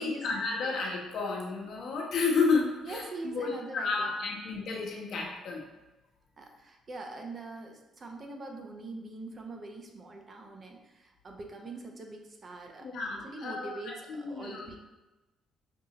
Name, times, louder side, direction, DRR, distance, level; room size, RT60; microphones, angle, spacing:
voice 1, 0.0-5.6 12.8-14.8, left 4 dB, 65° left, -1 dB, 0.9 m, -31 dB
voice 2, 2.8-4.1 6.4-12.9 13.2-14.8, right 2 dB, 40° right, 2 dB, 0.7 m, -43 dB
5.4 x 2.7 x 2.9 m, 1.1 s
cardioid pair, 85°, 0 cm